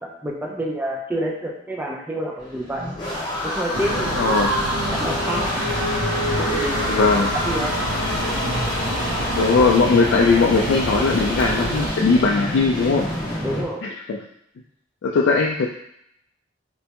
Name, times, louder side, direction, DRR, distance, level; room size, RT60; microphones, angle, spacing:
voice 1, 0.0-2.9 3.4-4.4 4.9-5.5 6.2-7.0 7.4-7.8 8.2-8.4 13.4-13.8, right 1 dB, 10° right, -1 dB, 0.4 m, -28 dB
sound 1, 2.4-13.6, left 1 dB, 20° left, 1.0 m, -27 dB
sound 2, 3.7-11.9, right 1 dB, 80° right, 0.6 m, -27 dB
voice 2, 4.2-4.5 6.9-7.4 9.3-13.1 13.8-14.2 15.0-15.7, left 4 dB, 70° left, 0 dB, 0.3 m, -19 dB
sound 3, 6.0-12.2, right 1 dB, 45° right, 0.8 m, -41 dB
4.4 x 2.1 x 2.9 m, 0.74 s
head